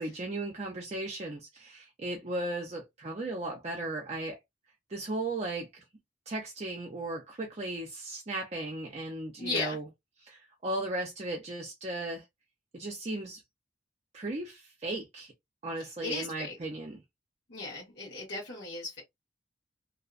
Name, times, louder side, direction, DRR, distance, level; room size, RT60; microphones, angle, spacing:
voice 1, 0.0-4.4 4.9-5.8 6.3-9.9 10.2-12.2 12.7-13.4 14.1-15.3 15.6-17.0, right 2 dB, 35° right, 0.4 m, -36 dB
voice 2, 9.4-9.8 16.0-16.6 17.5-19.0, left 3 dB, 60° left, 1.2 m, -36 dB
2.6 x 2.1 x 2.4 m
head